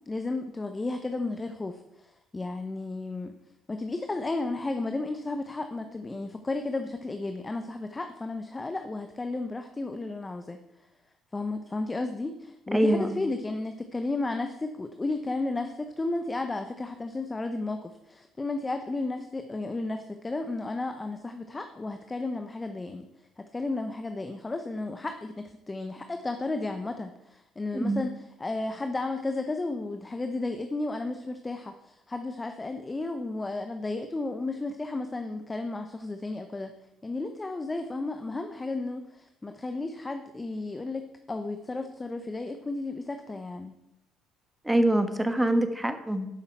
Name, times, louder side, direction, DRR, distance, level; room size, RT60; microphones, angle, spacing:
voice 1, 0.1-3.3 3.7-10.6 11.3-23.1 23.4-36.7 37.0-43.7, left 2 dB, 20° left, 7 dB, 0.8 m, -33 dB
voice 2, 12.7-13.2 27.7-28.0 44.6-46.3, right 1 dB, 10° right, 8 dB, 1.3 m, -24 dB
13.0 x 5.7 x 4.5 m, 0.89 s
supercardioid pair, 70°, 0 cm